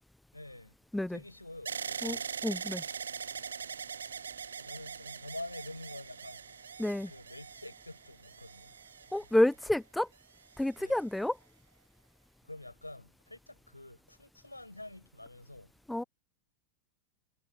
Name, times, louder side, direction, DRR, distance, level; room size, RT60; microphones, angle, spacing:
voice 1, 0.3-0.7 1.1-2.3 4.6-6.4 7.1-8.7 10.8-11.0 12.5-15.7, left 2 dB, 85° left, 6.3 m, -47 dB
sound 1, 1.7-9.7 10.4-11.0, right 6 dB, 70° right, 1.2 m, -42 dB
voice 2, 2.4-2.8 6.8-7.1 9.1-10.1 10.6-11.4 15.9-16.0, left 1 dB, 5° left, 0.5 m, -29 dB
figure-of-eight pair, 90°, 0 cm